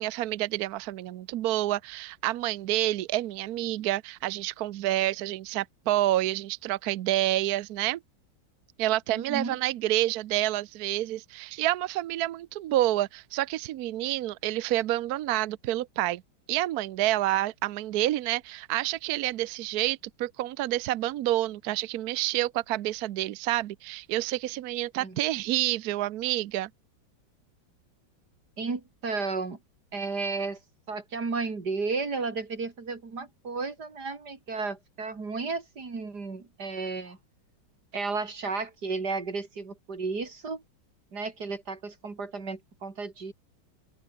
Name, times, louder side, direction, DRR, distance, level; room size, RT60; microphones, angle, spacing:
voice 1, 0.0-8.0 8.8-16.2 16.5-26.7, right 15 dB, 70° right, 0.9 m, -28 dB
voice 2, 9.1-9.6 25.0-25.2 28.6-29.6 29.9-30.6 30.9-37.2 37.9-40.6 41.1-43.3, right 4 dB, 50° right, 3.9 m, -33 dB
open air
omnidirectional pair, 2.2 m